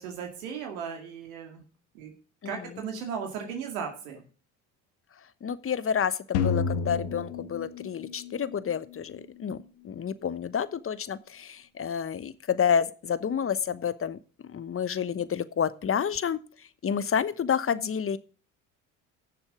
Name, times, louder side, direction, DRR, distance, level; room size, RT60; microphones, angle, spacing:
voice 1, 0.0-1.6 1.9-2.1 2.4-4.2, right 6 dB, 85° right, 3 dB, 2.4 m, -36 dB
voice 2, 5.4-16.4 16.8-18.2, left 7 dB, 30° left, 15 dB, 1.1 m, -29 dB
sound 1, 6.3-8.5, left 5 dB, 75° left, 1.8 m, -29 dB
16.5 x 7.0 x 5.0 m, 0.38 s
hypercardioid pair, 65°, 41 cm